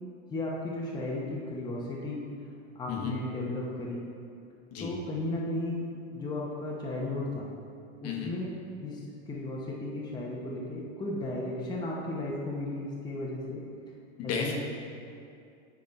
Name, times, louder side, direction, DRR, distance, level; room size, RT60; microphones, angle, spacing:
voice 1, 0.3-2.2 2.7-4.0 4.8-7.5 8.0-8.5 8.8-9.0 9.3-13.6 14.2-14.6, left 2 dB, 10° left, -5 dB, 0.9 m, -34 dB
voice 2, 14.2-14.6, left 6 dB, 40° left, 0 dB, 1.2 m, -33 dB
9.5 x 3.7 x 4.3 m, 2.4 s
supercardioid pair, 115°, 37 cm